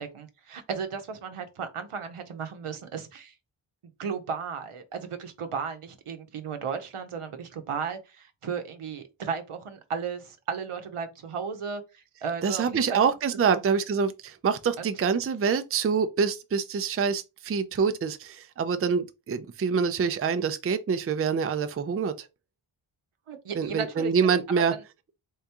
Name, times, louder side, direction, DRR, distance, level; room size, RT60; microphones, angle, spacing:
voice 1, 0.0-3.3 4.0-12.8 13.4-13.6 14.8-14.9 23.3-24.1 24.7-24.8, right 6 dB, 85° right, 0.8 m, -35 dB
voice 2, 12.4-22.3 23.5-24.7, right 6 dB, 30° right, 0.4 m, -26 dB
3.6 x 3.4 x 2.8 m
wide cardioid pair, 80°, 50 cm